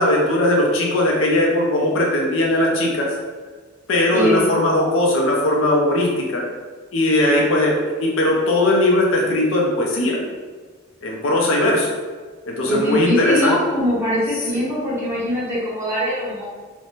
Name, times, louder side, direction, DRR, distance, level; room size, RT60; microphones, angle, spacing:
voice 1, 0.0-3.1 3.9-6.4 6.9-10.2 11.0-11.9 12.5-13.6, left 1 dB, 70° left, -2 dB, 0.5 m, -19 dB
voice 2, 4.1-4.4 12.6-16.4, equal, 10° right, -9 dB, 0.8 m, -22 dB
2.5 x 2.1 x 3.0 m, 1.4 s
head